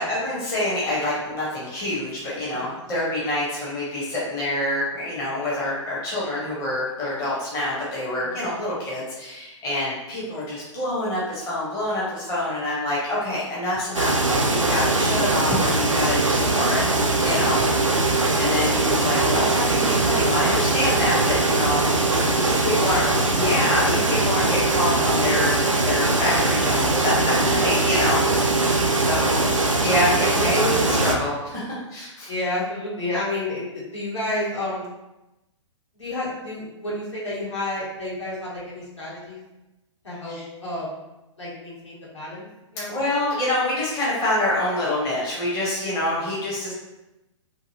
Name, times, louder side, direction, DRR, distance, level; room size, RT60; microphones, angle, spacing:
voice 1, 0.0-14.1 14.5-16.8 17.2-17.6 18.4-21.8 22.3-23.1 23.3-25.5 25.8-28.5 29.0-31.6 31.9-32.3 40.3-40.4 42.9-46.7, left 1 dB, 20° left, -7 dB, 0.7 m, -26 dB
sound 1, 13.9-31.2, right 2 dB, 90° right, 0.4 m, -21 dB
voice 2, 17.2-17.9 22.1-23.2 30.4-31.0 32.3-34.9 35.9-39.4 40.0-40.9 41.4-42.5 42.7-43.0, left 1 dB, 70° left, -7 dB, 1.3 m, -31 dB
2.7 x 2.6 x 2.6 m, 0.97 s
figure-of-eight pair, 115°, 16 cm